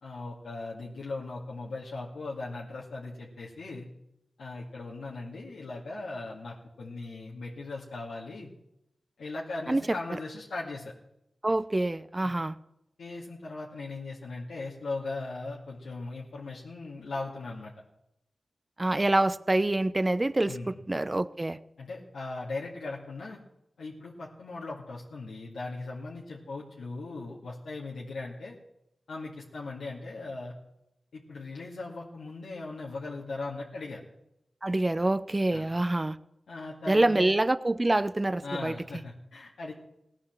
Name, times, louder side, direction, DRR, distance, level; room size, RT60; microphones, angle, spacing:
voice 1, 0.0-3.9 4.4-8.5 9.2-10.9 12.2-12.3 13.0-17.7 20.5-20.8 21.8-23.4 23.8-28.5 29.1-30.5 31.1-34.0 35.5-35.7 36.5-37.3 38.4-39.7, left 3 dB, 85° left, -5 dB, 2.2 m, -38 dB
voice 2, 11.4-12.5 18.8-21.6 34.6-36.2 36.9-38.8, right 2 dB, 30° right, 15 dB, 0.8 m, -26 dB
17.0 x 9.9 x 7.3 m, 0.84 s
cardioid pair, 40°, 0 cm